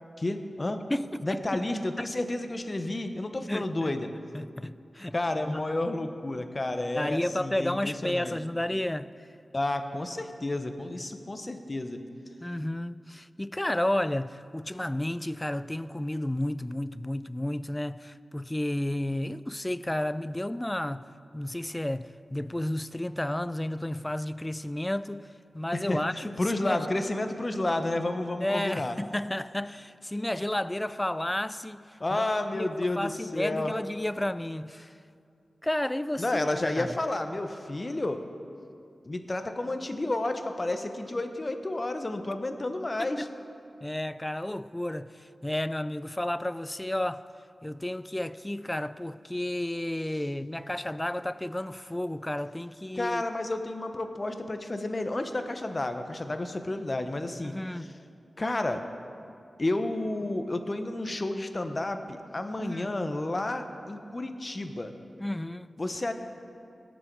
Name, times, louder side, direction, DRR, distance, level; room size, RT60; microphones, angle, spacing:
voice 1, 0.2-0.8 1.2-4.1 5.1-8.4 9.5-12.0 25.7-29.0 32.0-33.8 36.2-38.2 39.0-43.3 53.0-57.5 58.4-58.8 59.6-64.9 65.8-66.1, left 2 dB, 40° left, 0.9 m, -31 dB
voice 2, 0.9-2.1 3.5-5.1 5.4-5.8 7.0-9.3 12.4-26.8 28.4-32.7 33.0-35.0 35.6-37.0 43.0-43.3 43.8-47.3 47.6-53.2 57.4-57.9 62.6-62.9 65.2-65.7, left 1 dB, 15° left, 0.3 m, -32 dB
18.0 x 6.3 x 4.6 m
cardioid pair, 45°, 0 cm